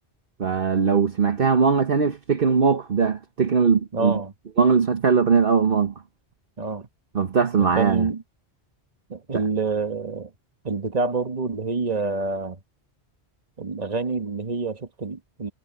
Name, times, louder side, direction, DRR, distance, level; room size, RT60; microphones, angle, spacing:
voice 1, 0.4-4.2 4.6-5.9 7.1-8.1 9.3-9.4, right 5 dB, 55° right, 1.3 m, -20 dB
voice 2, 3.9-4.3 6.6-6.9 7.5-8.2 9.1-10.3 10.6-12.6 13.6-15.5, right 4 dB, 35° right, 1.6 m, -27 dB
omnidirectional pair, 1.1 m